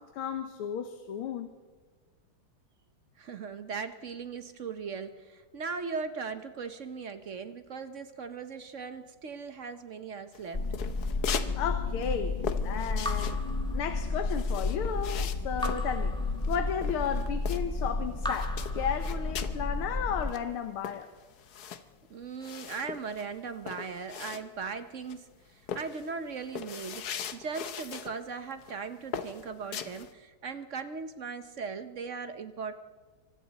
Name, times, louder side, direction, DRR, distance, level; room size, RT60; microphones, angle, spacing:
voice 1, 0.0-1.5 11.3-13.4 13.7-16.2 16.5-21.1, left 7 dB, 85° left, 7 dB, 1.9 m, -34 dB
voice 2, 3.2-10.7 22.1-32.7, right 5 dB, 55° right, 9 dB, 0.8 m, -39 dB
sound 1, 10.3-11.6 11.8-17.9 18.2-19.6 20.0-20.1 20.3-24.8 25.1-25.3 25.7-28.2 28.5-28.8 29.1-30.1, left 8 dB, 55° left, 1.2 m, -39 dB
sound 2, 10.5-20.3, left 3 dB, 30° left, 0.5 m, -32 dB
Raindrop / Drip, 13.0-14.4 15.6-17.0 18.2-19.6, left 1 dB, 5° left, 1.1 m, -40 dB
27.5 x 24.5 x 4.1 m, 1.3 s
omnidirectional pair, 2.3 m